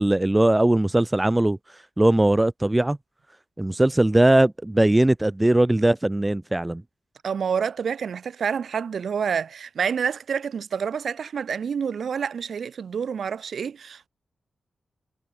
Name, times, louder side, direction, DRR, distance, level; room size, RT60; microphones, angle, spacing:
voice 1, 0.0-1.6 2.0-3.0 3.6-6.8, right 1 dB, 15° right, 0.6 m, -20 dB
voice 2, 7.2-14.1, right 7 dB, 70° right, 3.4 m, -28 dB
wide cardioid pair, 105°, 0 cm